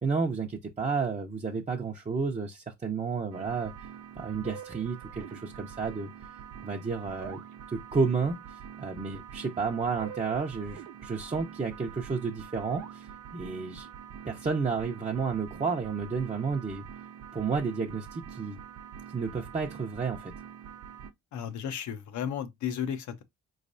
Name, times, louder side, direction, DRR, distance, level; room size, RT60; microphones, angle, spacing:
voice 1, 0.0-3.7 4.2-6.1 6.6-7.4 7.7-13.9 14.3-16.8 17.3-18.6 19.1-20.3, right 5 dB, 25° right, 0.6 m, -31 dB
sound 1, 3.3-21.1, right 8 dB, 75° right, 0.7 m, -45 dB
voice 2, 21.3-23.2, left 8 dB, 70° left, 0.8 m, -34 dB
4.5 x 3.2 x 2.6 m
cardioid pair, 90°, 30 cm